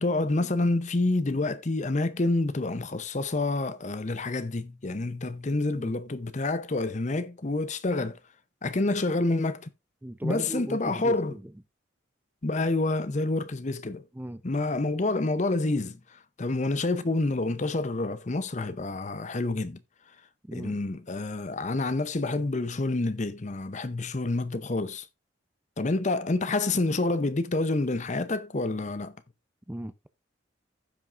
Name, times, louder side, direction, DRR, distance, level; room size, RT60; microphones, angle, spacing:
voice 1, 0.0-8.2 8.6-9.7 10.2-11.4 12.4-14.0 14.4-19.8 20.5-25.1 25.8-29.1, left 2 dB, 40° left, 0.7 m, -28 dB
voice 2, 10.0-11.5 14.1-14.4 20.4-20.8 29.7-30.1, right 1 dB, 10° right, 0.5 m, -37 dB
15.5 x 5.9 x 2.5 m
head